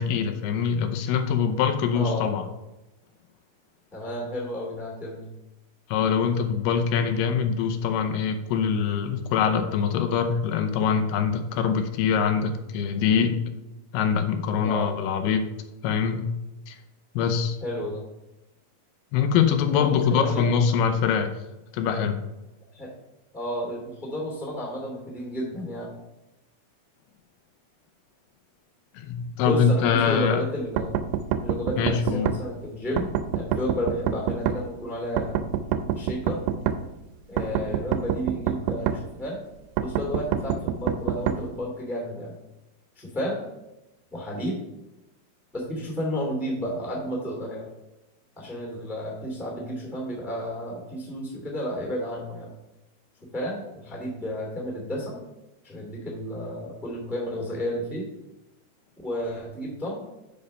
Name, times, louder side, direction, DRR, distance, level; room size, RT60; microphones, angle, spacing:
voice 1, 0.0-2.4 5.9-13.4 13.9-15.4 15.8-16.3 16.7-16.8 17.2-17.6 19.1-21.4 21.7-22.2 28.9-30.4 31.8-32.3, left 7 dB, 85° left, 7 dB, 2.7 m, -24 dB
voice 2, 1.9-2.3 3.9-5.3 14.6-14.9 17.6-18.1 19.7-20.4 22.7-22.9 23.3-25.9 29.4-31.0 31.4-33.1 33.3-35.5 35.9-36.4 37.3-39.4 39.8-42.3 42.9-43.4 44.1-44.6 45.5-47.7 48.3-52.5 53.2-55.2 55.6-58.1 59.0-60.0, equal, ahead, -2 dB, 1.3 m, -32 dB
sound 1, 30.8-32.4 33.0-34.6 35.2-36.8 37.4-39.0 39.8-41.4, right 8 dB, 85° right, 2.5 m, -27 dB
6.9 x 5.4 x 5.4 m, 0.98 s
omnidirectional pair, 4.5 m